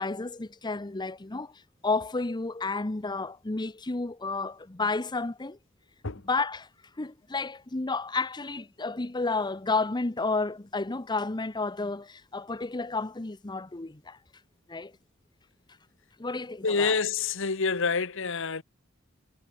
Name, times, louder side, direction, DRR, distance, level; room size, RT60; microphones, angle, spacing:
voice 1, 0.0-5.6 6.3-6.7 7.0-14.2 14.7-14.9 16.2-17.0, left 3 dB, 20° left, 0.8 m, -31 dB
voice 2, 16.6-18.6, left 5 dB, 65° left, 1.3 m, -27 dB
head